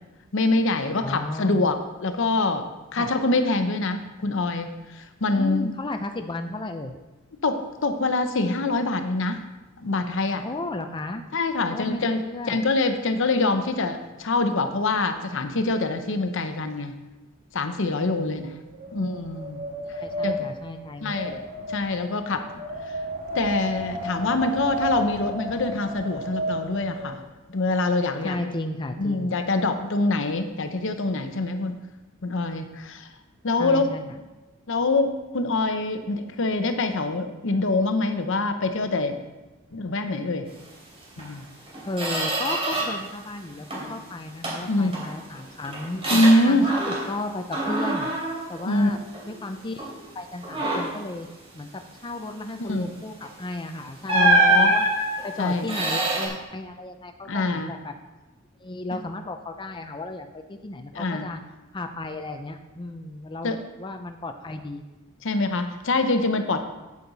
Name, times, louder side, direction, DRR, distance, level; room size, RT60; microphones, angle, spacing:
voice 1, 0.3-2.6 2.9-4.7 4.9-5.7 7.4-9.4 9.8-10.4 11.3-12.2 12.5-16.9 17.5-18.6 18.9-19.6 20.2-20.5 21.0-21.4 21.7-22.4 23.3-27.2 27.5-28.4 29.0-31.8 32.2-33.1 33.4-34.1 34.7-39.2 39.7-40.5 41.2-41.4 44.6-44.9 46.1-46.7 48.7-49.0 52.6-52.9 54.1-54.7 55.4-55.7 57.3-57.7 58.9-59.0 60.9-61.3 63.4-63.6 65.2-66.6, left 2 dB, 65° left, 7 dB, 0.8 m, -24 dB
voice 2, 1.0-1.7 3.0-3.1 5.3-6.9 10.4-11.2 11.7-12.6 18.2-18.6 18.9-19.0 19.9-21.4 28.2-29.3 33.6-34.1 41.8-46.0 46.5-48.1 48.5-49.0 49.3-51.3 51.5-51.7 52.0-54.9 55.2-57.9 58.6-61.4 61.7-64.8, left 2 dB, 25° left, 6 dB, 0.5 m, -34 dB
Wind, 18.0-27.2, equal, 45° right, 1.9 m, -33 dB
Squeak, 41.2-41.3 41.7-43.1 43.4-44.0 44.4-47.2 47.5-49.4 49.8-50.0 50.4-51.1 53.2-53.4 54.1-56.3, right 2 dB, 30° right, 3.1 m, -25 dB
8.7 x 8.5 x 4.0 m, 1.1 s
head